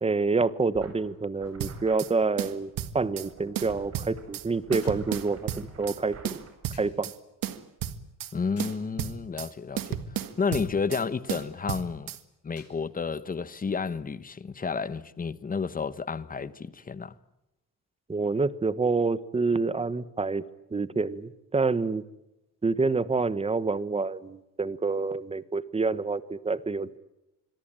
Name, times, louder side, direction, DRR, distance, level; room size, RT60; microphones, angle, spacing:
voice 1, 0.0-6.2 6.8-7.1 18.1-20.4 20.7-22.0 22.6-27.0, right 4 dB, 15° right, 1.1 m, -27 dB
sound 1, 0.7-6.5, right 5 dB, 45° right, 6.6 m, -50 dB
sound 2, 1.0-1.1 4.8-5.2 6.7-7.0 8.6-8.9 11.3-11.5 12.6-12.8 13.9-14.0, left 6 dB, 45° left, 6.3 m, -54 dB
sound 3, 1.6-2.1 2.4-3.3 3.6-4.5 4.7-6.0 6.3-7.2 7.4-8.3 8.6-9.5 9.8-11.0 11.3-12.2, right 10 dB, 75° right, 1.8 m, -33 dB
voice 2, 8.3-10.0 10.4-12.1 12.4-17.1, left 5 dB, 25° left, 1.0 m, -31 dB
26.5 x 22.5 x 8.9 m
cardioid pair, 150°, 34 cm